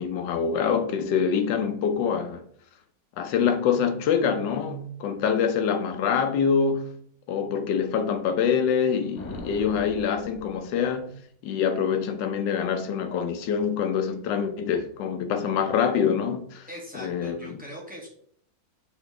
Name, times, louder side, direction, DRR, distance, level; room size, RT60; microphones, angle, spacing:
voice 1, 0.0-2.4 3.2-6.9 7.3-11.1 11.4-16.7 16.9-17.5, left 7 dB, 70° left, 1.3 m, -25 dB
sound 1, 9.2-11.3, left 1 dB, 45° left, 0.5 m, -42 dB
voice 2, 16.7-18.1, equal, 5° right, 1.8 m, -41 dB
6.2 x 5.6 x 3.2 m
omnidirectional pair, 2.2 m